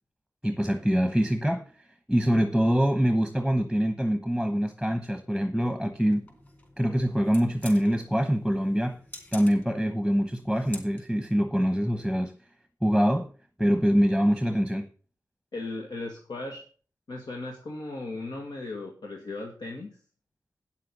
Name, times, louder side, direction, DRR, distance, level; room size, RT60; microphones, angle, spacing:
voice 1, 0.4-1.6 2.1-6.3 6.8-9.0 9.3-12.3 12.8-13.3 13.6-14.9, equal, ahead, 1.1 m, -24 dB
sound 1, 6.0-11.3, left 2 dB, 30° left, 4.3 m, -48 dB
voice 2, 15.5-16.6 17.1-20.0, left 2 dB, 80° left, 1.8 m, -37 dB
9.3 x 7.6 x 6.8 m
wide cardioid pair, 90°, 7 cm